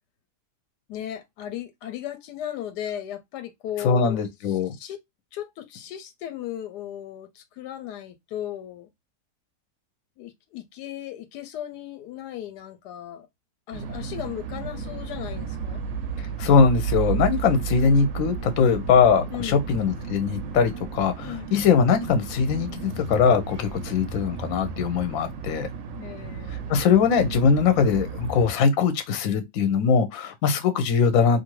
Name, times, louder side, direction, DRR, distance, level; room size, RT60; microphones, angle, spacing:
voice 1, 0.9-5.0 5.3-8.9 10.2-13.3 13.7-15.8 19.3-19.8 21.2-21.5 25.9-26.8, left 11 dB, 90° left, 1.2 m, -36 dB
voice 2, 3.8-4.7 16.4-25.7 26.7-31.4, left 6 dB, 65° left, 1.0 m, -21 dB
sound 1, 13.7-28.5, right 6 dB, 70° right, 0.8 m, -33 dB
2.6 x 2.6 x 2.9 m
omnidirectional pair, 1.7 m